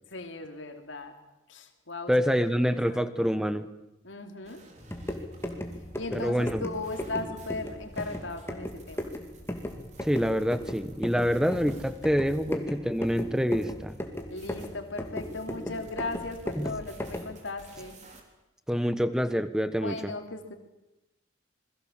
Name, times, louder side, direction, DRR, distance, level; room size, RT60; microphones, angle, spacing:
voice 1, 0.1-1.1 1.5-2.4 2.7-3.3 4.0-4.6 6.0-9.1 14.3-18.0 19.8-20.5, left 2 dB, 75° left, 5 dB, 3.0 m, -37 dB
voice 2, 2.1-3.7 6.1-6.6 10.0-14.0 16.6-16.7 18.7-20.0, equal, 5° right, 11 dB, 1.2 m, -26 dB
sound 1, 4.4-18.2, right 1 dB, 35° right, 3.9 m, -54 dB
sound 2, 4.8-17.4, left 1 dB, 15° left, 2.4 m, -37 dB
28.0 x 21.5 x 7.4 m, 0.95 s
head